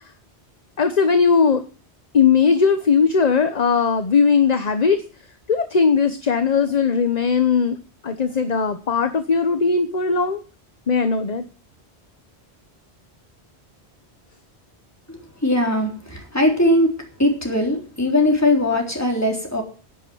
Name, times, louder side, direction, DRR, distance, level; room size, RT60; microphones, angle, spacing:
voice 1, 0.8-1.6 2.1-5.0 5.5-7.8 8.0-10.4 10.9-11.4, left 5 dB, 40° left, 9 dB, 1.0 m, -18 dB
voice 2, 15.4-16.9 17.2-19.6, left 1 dB, 15° left, 1 dB, 3.6 m, -19 dB
11.0 x 9.5 x 7.8 m, 0.40 s
omnidirectional pair, 1.1 m